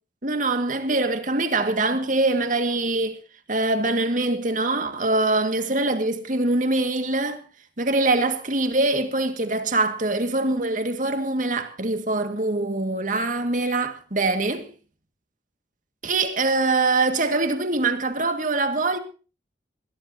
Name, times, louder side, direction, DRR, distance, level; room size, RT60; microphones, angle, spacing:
voice 1, 0.2-3.2 3.5-7.4 7.8-14.7 16.0-19.0, right 2 dB, 45° right, 2.1 m, -23 dB
22.0 x 15.0 x 2.9 m
head